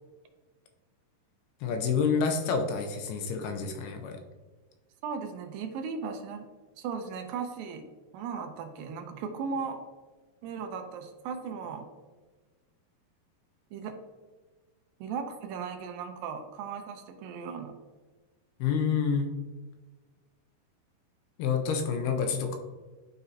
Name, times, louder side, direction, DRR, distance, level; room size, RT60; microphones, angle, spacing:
voice 1, 1.6-4.2 18.6-19.3 21.4-22.6, left 6 dB, 85° left, 4 dB, 2.6 m, -28 dB
voice 2, 5.0-6.5 6.8-7.9 8.1-9.8 10.4-11.9 13.7-14.0 15.0-17.7, right 6 dB, 80° right, 6 dB, 2.2 m, -37 dB
12.0 x 4.1 x 2.7 m, 1.3 s
omnidirectional pair, 4.5 m